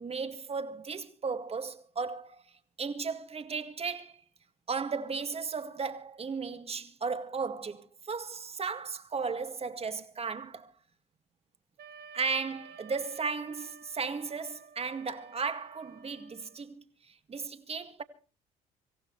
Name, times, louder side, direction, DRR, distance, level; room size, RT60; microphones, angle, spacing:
voice 1, 0.0-2.4 2.8-4.2 4.7-10.7 12.1-18.0, right 5 dB, 35° right, 2.0 m, -35 dB
Wind instrument woodwind instrument, 11.8-16.7, right 6 dB, 65° right, 1.8 m, -53 dB
25.5 x 15.5 x 3.2 m
supercardioid pair, 75°, 18 cm